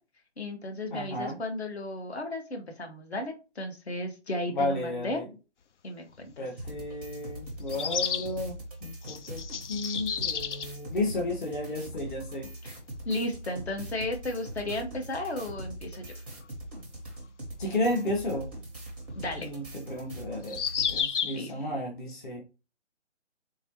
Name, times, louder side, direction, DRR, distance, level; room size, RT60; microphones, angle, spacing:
voice 1, 0.4-5.2 5.8-6.5 12.6-12.8 13.0-16.0 19.1-19.5 21.2-21.8, left 1 dB, 65° left, 4 dB, 1.3 m, -34 dB
voice 2, 0.9-1.4 4.5-5.3 6.4-8.6 8.8-9.4 9.7-12.5 17.6-18.5 19.4-20.6 20.9-22.4, left 1 dB, 45° left, 0 dB, 1.0 m, -32 dB
sound 1, 6.2-6.3 7.7-8.3 9.0-10.7 11.9-12.0 12.2-12.3 14.7-14.8 18.0-18.1 20.4-21.4, left 7 dB, 80° left, 0.5 m, -31 dB
sound 2, 6.6-21.0, right 1 dB, 10° right, 0.5 m, -42 dB
3.7 x 3.1 x 2.9 m, 0.29 s
figure-of-eight pair, 150°, 35 cm